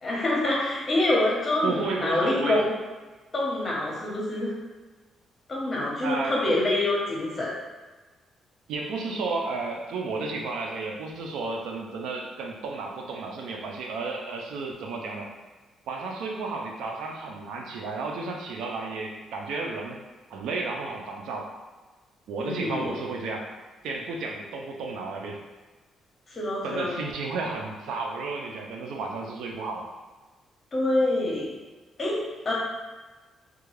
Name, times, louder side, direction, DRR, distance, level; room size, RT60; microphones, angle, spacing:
voice 1, 0.0-2.7 3.3-4.5 5.5-7.5 22.4-22.9 26.3-26.9 30.7-31.5 32.0-32.5, left 1 dB, 35° left, -4 dB, 0.9 m, -26 dB
voice 2, 1.6-2.6 6.0-6.6 8.7-15.3 15.9-20.0 20.3-21.6 22.3-23.5 23.8-25.4 26.6-29.9, right 3 dB, 80° right, 0 dB, 0.4 m, -32 dB
2.3 x 2.2 x 3.1 m, 1.3 s
cardioid pair, 90°, 0 cm